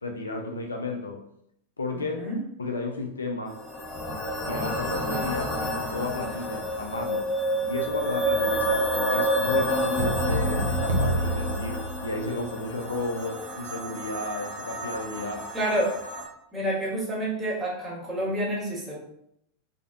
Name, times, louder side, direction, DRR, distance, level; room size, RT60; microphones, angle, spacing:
voice 1, 0.0-1.3 1.8-2.2 2.6-3.6 4.4-7.3 7.6-15.5, left 2 dB, 80° left, 2 dB, 0.3 m, -33 dB
voice 2, 1.9-2.4 15.5-15.9 16.5-18.9, right 1 dB, 15° right, -5 dB, 1.0 m, -28 dB
sound 1, 3.5-16.2, equal, 25° left, 0.7 m, -29 dB
sound 2, 10.0-12.5, right 1 dB, 75° right, 0.4 m, -28 dB
2.4 x 2.0 x 2.4 m, 0.74 s
figure-of-eight pair, 90°, 0 cm